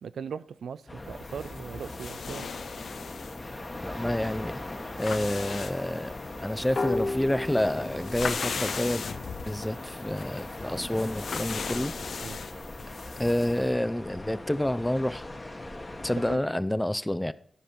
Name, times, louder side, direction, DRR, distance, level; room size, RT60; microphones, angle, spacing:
voice 1, 0.0-2.5 12.2-12.4 16.3-16.4, right 7 dB, 80° right, 0.3 m, -39 dB
sound 1, 0.9-16.4, left 2 dB, 30° left, 1.1 m, -40 dB
sound 2, 1.1-13.6, left 5 dB, 70° left, 0.4 m, -39 dB
voice 2, 3.8-4.6 5.0-6.1 6.4-9.1 9.4-11.9 13.2-15.3 16.0-17.3, left 1 dB, 10° left, 0.4 m, -28 dB
sound 3, 6.8-10.2, left 2 dB, 55° left, 1.9 m, -35 dB
12.5 x 5.1 x 4.3 m
cardioid pair, 55°, 0 cm